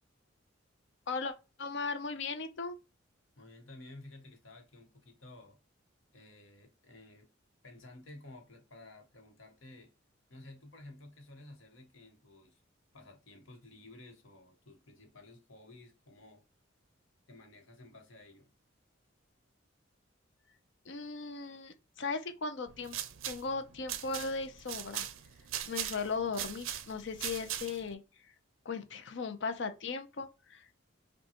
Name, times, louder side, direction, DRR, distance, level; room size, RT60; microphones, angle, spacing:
voice 1, 1.6-2.7 20.9-23.0 23.2-25.0 25.7-28.0 28.6-30.7, left 4 dB, 60° left, 0.6 m, -37 dB
voice 2, 3.4-5.6 6.1-7.3 7.6-9.9 10.3-12.6 12.9-16.4 17.3-18.5, left 2 dB, 80° left, 1.2 m, -53 dB
sound 1, 22.7-27.9, right 11 dB, 85° right, 0.5 m, -40 dB
5.2 x 2.3 x 2.9 m
head